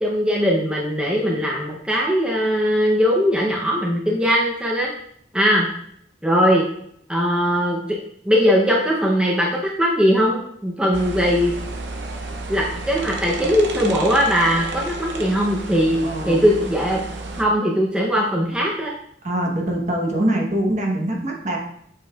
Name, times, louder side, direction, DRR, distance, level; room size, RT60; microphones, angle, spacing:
voice 1, 0.0-4.9 5.3-5.7 6.2-6.6 7.1-8.0 8.2-11.5 12.5-16.0 16.3-17.0 17.4-18.9, equal, 5° right, -3 dB, 0.7 m, -20 dB
sound 1, 10.9-17.4, right 2 dB, 75° right, 0.7 m, -32 dB
voice 2, 15.9-16.4 19.2-21.6, right 1 dB, 40° right, 0 dB, 1.1 m, -23 dB
7.6 x 5.3 x 2.4 m, 0.69 s
head